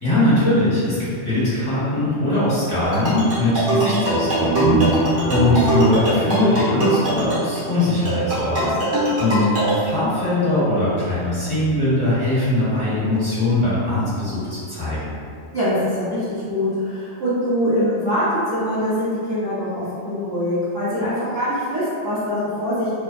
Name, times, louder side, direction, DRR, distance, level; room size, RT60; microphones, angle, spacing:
voice 1, 0.0-8.7 9.2-15.1, left 1 dB, 20° left, -13 dB, 1.2 m, -21 dB
sound 1, 2.8-9.7, right 2 dB, 70° right, 1.2 m, -23 dB
sound 2, 4.2-7.4, right 2 dB, 60° left, 0.5 m, -24 dB
voice 2, 8.6-9.1 15.5-23.0, equal, 30° right, -15 dB, 0.4 m, -23 dB
2.6 x 2.2 x 2.5 m, 2.3 s
omnidirectional pair, 1.4 m